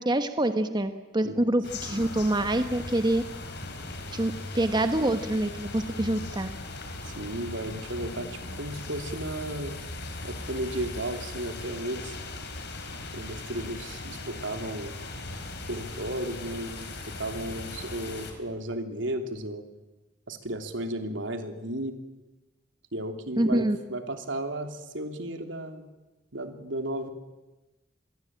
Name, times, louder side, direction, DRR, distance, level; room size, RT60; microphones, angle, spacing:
voice 1, 0.0-3.2 4.1-6.5 23.4-23.8, right 1 dB, 25° right, 9 dB, 1.3 m, -26 dB
sound 1, 1.6-18.3, left 2 dB, 60° left, 4.4 m, -39 dB
voice 2, 7.0-9.7 10.2-12.2 13.1-15.0 15.7-19.6 20.3-21.9 22.9-25.9 26.3-27.1, right 1 dB, 80° right, 6 dB, 3.1 m, -34 dB
26.5 x 22.5 x 8.9 m, 1.1 s
head